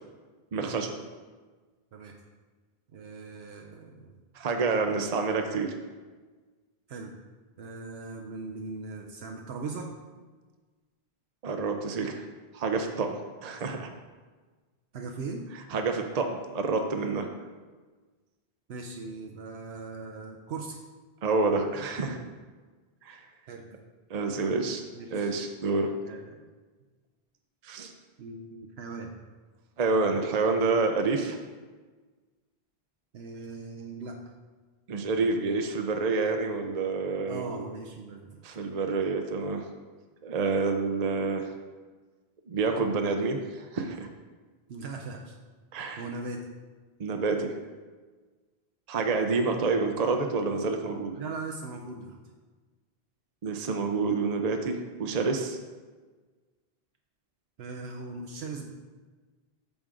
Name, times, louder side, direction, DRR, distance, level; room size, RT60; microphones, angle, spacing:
voice 1, 0.5-0.9 4.3-5.7 11.4-12.2 12.5-13.2 13.4-13.9 15.7-17.3 21.2-22.2 23.0-23.2 24.1-24.8 25.1-25.9 27.6-27.9 29.8-31.4 34.9-37.6 38.4-39.6 40.2-41.5 42.5-44.1 45.7-46.0 47.0-47.5 48.9-51.1 53.4-55.6, right 4 dB, 45° right, 4 dB, 0.7 m, -28 dB
voice 2, 2.9-4.2 6.9-7.1 7.6-9.9 14.9-15.5 18.7-20.8 23.5-23.7 24.9-25.3 26.0-26.4 28.2-29.1 33.1-34.2 37.3-38.4 44.7-45.4 46.0-46.5 51.2-52.2 57.6-58.7, right 3 dB, 80° right, 1 dB, 1.0 m, -39 dB
8.7 x 6.2 x 3.8 m, 1.4 s
omnidirectional pair, 1.0 m